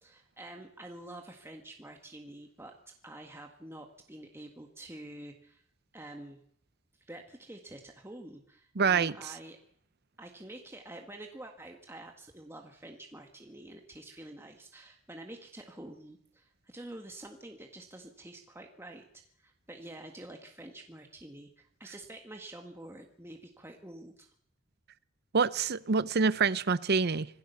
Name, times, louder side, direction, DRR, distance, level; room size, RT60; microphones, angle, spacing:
voice 1, 0.0-5.6 5.9-6.4 7.1-9.6 10.2-19.1 19.4-24.3, right 1 dB, 15° right, 1.7 m, -48 dB
voice 2, 8.8-9.1 25.3-27.3, right 5 dB, 55° right, 0.8 m, -26 dB
25.5 x 16.5 x 7.0 m
head